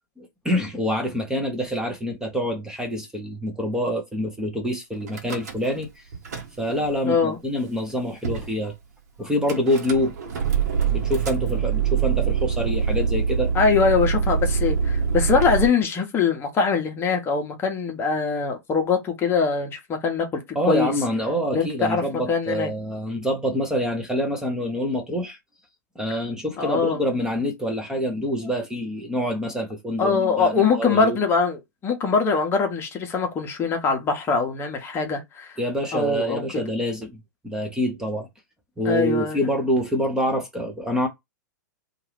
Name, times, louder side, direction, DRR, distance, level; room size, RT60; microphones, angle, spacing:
voice 1, 0.2-6.0 6.6-8.7 9.2-10.1 10.9-13.5 20.5-25.4 25.9-31.2 35.6-38.3 38.8-41.1, equal, 5° right, 0.9 m, -26 dB
Car / Engine starting / Idling, 5.1-5.9 6.1-6.9 7.6-7.7 7.8-7.9 8.2-8.5 9.5-15.7, right 6 dB, 60° right, 1.0 m, -24 dB
voice 2, 7.0-7.4 13.5-20.3 20.7-20.9 21.5-22.0 22.3-22.7 26.6-27.0 30.0-35.6 35.9-36.4 38.8-39.4, left 5 dB, 25° left, 0.9 m, -22 dB
2.7 x 2.5 x 3.4 m
figure-of-eight pair, 105°, 10 cm